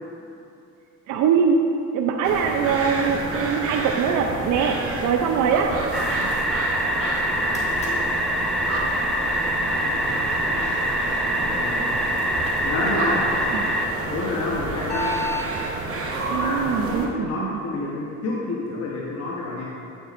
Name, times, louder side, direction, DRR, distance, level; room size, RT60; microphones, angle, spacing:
voice 1, 1.1-1.6 1.9-5.7 13.5-13.7 16.3-17.6, right 6 dB, 75° right, 3 dB, 0.5 m, -22 dB
sound 1, 2.2-17.1, right 3 dB, 50° right, 1.0 m, -30 dB
sound 2, 5.9-13.9, equal, ahead, 0.5 m, -25 dB
sound 3, 7.3-15.5, left 2 dB, 20° left, 1.4 m, -38 dB
voice 2, 9.8-10.7 11.1-11.9 12.6-13.3 14.1-15.2 16.3-19.6, left 2 dB, 55° left, -4 dB, 1.0 m, -29 dB
7.8 x 7.0 x 2.5 m, 2.7 s
cardioid pair, 90°, 30 cm